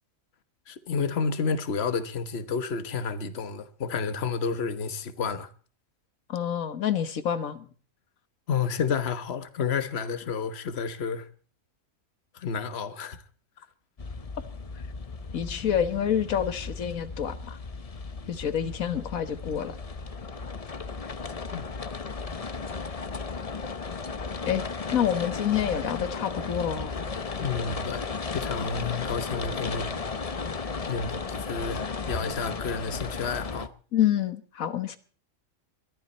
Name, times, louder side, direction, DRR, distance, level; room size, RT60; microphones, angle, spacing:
voice 1, 0.7-5.5 8.5-11.3 12.3-13.2 21.5-21.7 27.4-29.9 30.9-33.7, left 5 dB, 50° left, 1.4 m, -30 dB
voice 2, 6.3-7.7 15.3-17.6 18.3-19.8 24.5-24.6 24.9-26.9 33.9-35.0, left 9 dB, 90° left, 1.6 m, -27 dB
sound 1, 14.0-33.7, left 4 dB, 30° left, 0.8 m, -35 dB
22.5 x 13.5 x 4.3 m
omnidirectional pair, 1.4 m